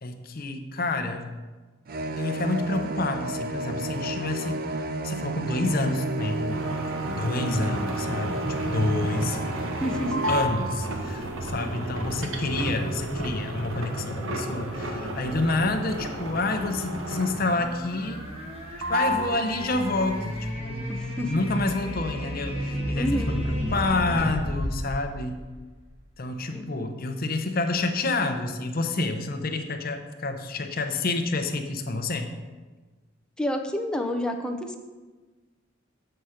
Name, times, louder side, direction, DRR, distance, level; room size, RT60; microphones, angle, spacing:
voice 1, 0.0-1.3 2.2-4.6 5.0-6.6 7.1-8.4 8.6-9.4 10.3-18.2 18.9-21.0 21.2-25.4 26.2-32.3, left 2 dB, 45° left, 6 dB, 0.7 m, -28 dB
sound 1, 1.9-10.4, right 2 dB, 45° right, 0.4 m, -32 dB
sound 2, 6.2-17.7 18.0-18.5 18.8-20.1, right 1 dB, 85° right, 1.0 m, -32 dB
voice 2, 7.4-7.8 9.8-10.2 20.9-21.4 22.9-23.4 26.5-26.9 33.4-34.8, equal, 5° left, 4 dB, 0.5 m, -30 dB
sound 3, 10.0-26.1, equal, 30° right, 1.4 m, -35 dB
7.7 x 5.7 x 5.0 m, 1.3 s
head